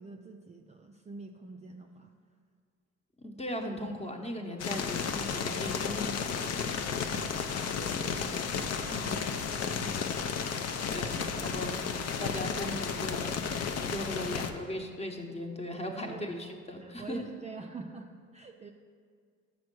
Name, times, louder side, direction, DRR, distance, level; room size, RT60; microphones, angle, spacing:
voice 1, 0.0-2.1 7.1-7.4 7.7-8.4 8.8-10.2 11.0-11.1 13.9-14.3 15.8-16.4 16.8-18.7, right 4 dB, 25° right, 3 dB, 0.3 m, -46 dB
voice 2, 3.2-6.5 10.9-11.7 12.2-17.2, left 1 dB, 20° left, 3 dB, 0.9 m, -38 dB
sound 1, 4.6-14.5, left 6 dB, 55° left, 0.6 m, -33 dB
6.3 x 5.3 x 6.1 m, 2.1 s
cardioid pair, 90°, 30 cm